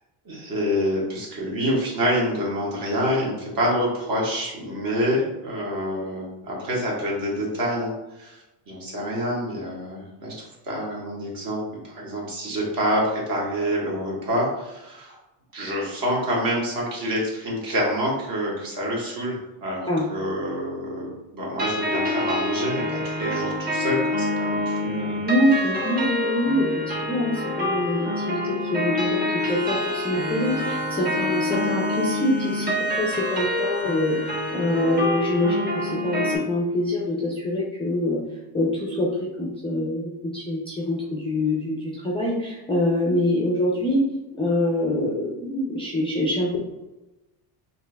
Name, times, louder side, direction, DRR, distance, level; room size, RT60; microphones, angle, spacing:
voice 1, 0.2-8.4 8.7-11.6 11.8-15.2 15.5-25.2, equal, 45° right, -4 dB, 1.5 m, -27 dB
sound 1, 21.6-36.4, left 1 dB, 20° right, 0.9 m, -27 dB
voice 2, 25.2-38.2 38.5-44.0 44.3-46.6, left 1 dB, 10° left, -4 dB, 0.4 m, -25 dB
sound 2, 29.4-35.1, left 1 dB, 75° right, 1.4 m, -39 dB
4.2 x 2.7 x 2.2 m, 1.0 s
cardioid pair, 115°, 49 cm